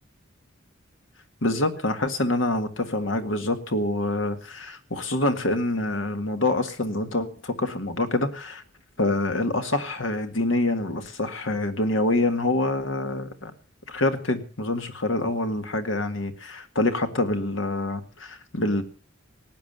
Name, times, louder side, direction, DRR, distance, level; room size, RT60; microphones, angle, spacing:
voice 1, 1.4-8.6 9.0-13.5 13.9-18.8, left 2 dB, 70° left, 7 dB, 1.8 m, -26 dB
18.5 x 9.0 x 6.8 m, 0.42 s
head